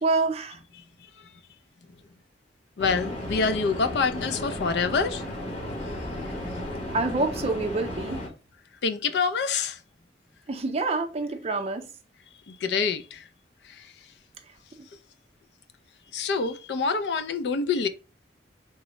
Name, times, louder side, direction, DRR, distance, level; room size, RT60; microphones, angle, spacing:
voice 1, 0.0-0.6 6.7-8.3 10.5-11.9, right 3 dB, 35° right, 0.5 m, -27 dB
voice 2, 2.8-5.2 8.8-9.8 12.5-13.2 13.7-13.8 16.1-17.9, left 5 dB, 70° left, 0.4 m, -26 dB
sound 1, 2.8-8.3, left 1 dB, 35° left, 0.9 m, -34 dB
3.6 x 2.0 x 2.9 m
head